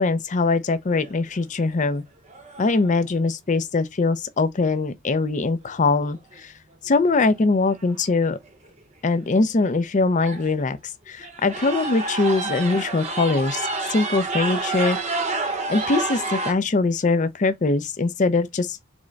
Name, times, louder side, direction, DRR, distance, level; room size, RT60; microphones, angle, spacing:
voice 1, 0.0-2.0 2.6-6.5 6.8-8.4 9.0-10.8 11.1-15.0 15.7-18.8, left 3 dB, 35° left, 0.5 m, -22 dB
sound 1, 0.9-1.3 1.9-2.0 2.3-2.9 6.1-6.2 7.3-7.4 7.6-8.0 8.4-8.5 9.3-9.4 9.6-9.8 10.2-10.6 11.2-16.5, right 3 dB, 30° right, 0.7 m, -29 dB
3.6 x 3.1 x 3.9 m
head